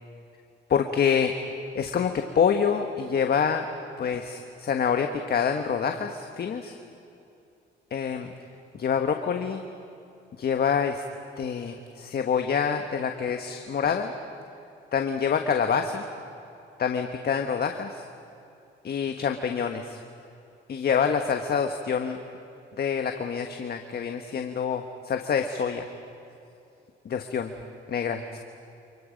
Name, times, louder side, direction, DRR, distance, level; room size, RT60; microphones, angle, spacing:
voice 1, 0.7-1.3 1.7-3.6 4.0-6.8 7.9-8.3 8.7-9.7 10.4-11.0 11.4-14.1 14.9-16.1 16.8-18.1 18.8-20.0 20.7-22.2 22.8-25.9 27.0-27.5 27.9-28.4, left 7 dB, 50° left, 5 dB, 1.5 m, -26 dB
30.0 x 28.0 x 5.3 m, 2.7 s
cardioid pair, 90°, 20 cm